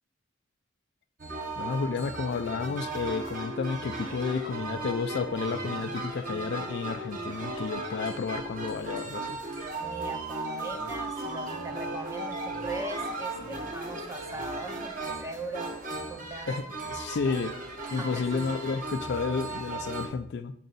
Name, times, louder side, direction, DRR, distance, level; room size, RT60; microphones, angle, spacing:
sound 1, 1.2-20.1, right 2 dB, 45° right, 1.2 m, -36 dB
voice 1, 1.6-9.4 16.5-17.5 17.9-20.5, left 5 dB, 60° left, 9 dB, 0.4 m, -31 dB
voice 2, 9.8-16.6 18.0-18.4, right 2 dB, 15° right, 5 dB, 0.6 m, -40 dB
7.6 x 4.6 x 4.0 m, 0.71 s
head